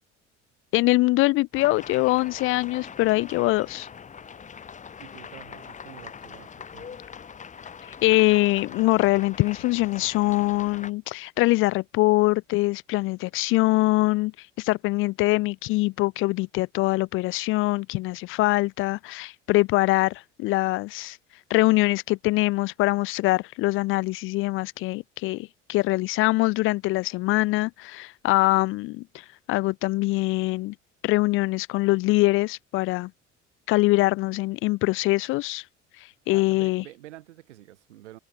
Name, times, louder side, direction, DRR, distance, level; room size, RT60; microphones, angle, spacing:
voice 1, 0.7-3.9 8.0-21.2 21.5-30.7 31.0-33.1 33.7-35.6 36.0-36.8, left 20 dB, 35° left, 0.4 m, -23 dB
sound 1, 1.5-10.9, left 6 dB, 20° left, 1.0 m, -42 dB
voice 2, 5.0-7.0 36.3-38.2, right 15 dB, 70° right, 2.6 m, -47 dB
figure-of-eight pair, 60°, 37 cm